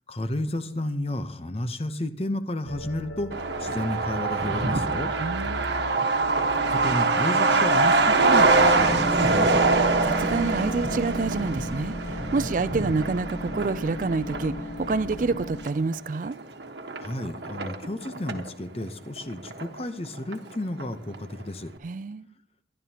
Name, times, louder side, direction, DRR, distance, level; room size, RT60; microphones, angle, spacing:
voice 1, 0.1-3.3 3.6-5.1 6.6-9.6 17.0-21.7, left 1 dB, 30° left, 0.8 m, -32 dB
sound 1, 2.6-15.7, left 1 dB, 85° left, 1.1 m, -35 dB
Truck, 3.3-18.5 18.8-18.9 19.2-20.1 20.3-20.4 20.8-21.2, right 3 dB, 70° right, 1.3 m, -24 dB
voice 2, 5.2-5.7 10.0-16.4 21.8-22.3, right 4 dB, 45° right, 0.4 m, -28 dB
24.0 x 11.0 x 2.9 m
head